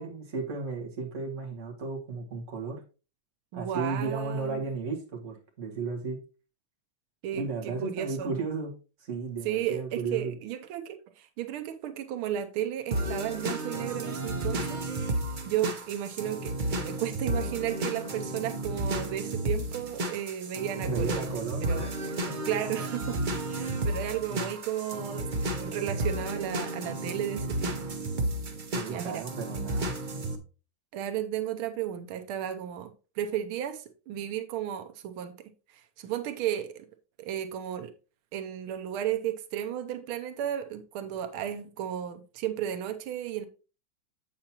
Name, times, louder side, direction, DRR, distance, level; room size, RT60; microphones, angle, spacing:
voice 1, 0.0-2.8 3.5-6.2 7.3-8.7 9.0-10.3 20.8-22.0 22.3-22.4 24.3-24.5 28.7-30.0, right 4 dB, 35° right, 2.0 m, -34 dB
voice 2, 3.5-4.6 7.2-8.3 9.4-14.9 15.5-21.2 21.6-23.2 23.5-27.8 28.9-29.2 30.9-32.9 33.2-36.8 37.2-37.9 38.3-43.5, right 11 dB, 85° right, 1.6 m, -34 dB
sound 1, 12.9-30.4, right 1 dB, 60° right, 0.5 m, -32 dB
7.7 x 7.3 x 2.9 m
omnidirectional pair, 2.3 m